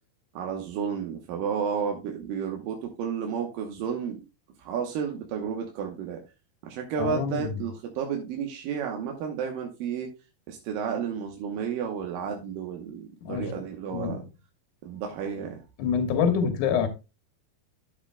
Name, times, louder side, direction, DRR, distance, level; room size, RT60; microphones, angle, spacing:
voice 1, 0.3-4.2 4.6-6.2 6.6-10.1 10.5-14.2 14.9-15.6, right 7 dB, 70° right, 2.5 m, -32 dB
voice 2, 7.0-7.5 13.2-13.5 13.9-14.2 15.8-16.9, left 7 dB, 60° left, 2.6 m, -26 dB
11.5 x 7.6 x 2.3 m
omnidirectional pair, 4.5 m